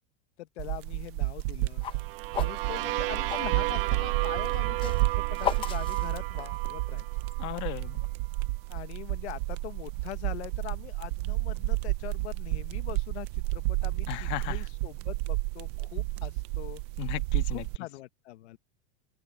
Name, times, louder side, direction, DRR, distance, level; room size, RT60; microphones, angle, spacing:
voice 1, 0.4-1.8 2.4-7.1 8.7-16.8 17.5-18.6, left 16 dB, 70° left, 1.2 m, -42 dB
sound 1, 0.6-17.8, right 19 dB, 25° right, 0.4 m, -31 dB
sound 2, 1.3-3.5 4.4-6.8, left 9 dB, 15° left, 0.8 m, -35 dB
sound 3, 1.9-7.7, right 19 dB, 55° right, 1.0 m, -34 dB
voice 2, 7.4-8.0 14.1-14.7 17.0-17.7, left 18 dB, 30° left, 1.4 m, -35 dB
open air
supercardioid pair, 175°, 34 cm